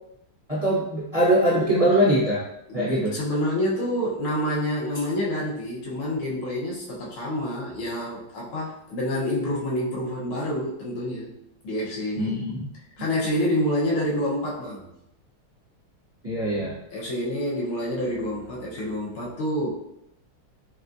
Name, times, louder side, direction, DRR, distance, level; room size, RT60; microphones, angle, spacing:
voice 1, 0.5-2.4 2.7-3.1 12.2-12.7 16.2-16.7, right 1 dB, 30° right, -8 dB, 0.6 m, -22 dB
voice 2, 2.7-11.3 11.6-12.4 13.0-14.9 16.9-19.7, left 1 dB, 85° left, -4 dB, 1.9 m, -27 dB
6.3 x 2.4 x 2.6 m, 0.79 s
omnidirectional pair, 2.3 m